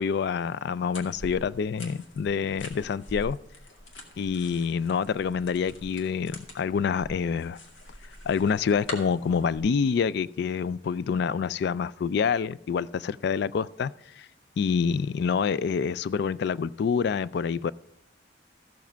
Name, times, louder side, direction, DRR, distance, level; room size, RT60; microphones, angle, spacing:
voice 1, 0.0-3.4 4.2-7.6 8.3-14.3 14.6-17.7, left 6 dB, 60° left, 0.3 m, -27 dB
sound 1, 0.9-9.6, left 1 dB, 90° left, 2.2 m, -44 dB
14.5 x 7.2 x 4.5 m
head